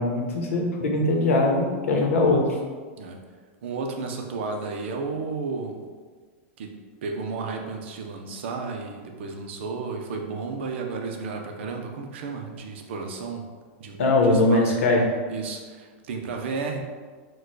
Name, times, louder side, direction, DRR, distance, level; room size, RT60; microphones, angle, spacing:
voice 1, 0.0-2.4 14.0-15.0, left 2 dB, 85° left, 1 dB, 0.9 m, -21 dB
voice 2, 3.6-5.8 6.6-6.8 7.0-13.5 13.8-14.8 15.3-16.8, right 4 dB, 60° right, 3 dB, 0.6 m, -33 dB
4.5 x 2.3 x 4.6 m, 1.5 s
supercardioid pair, 170°, 7 cm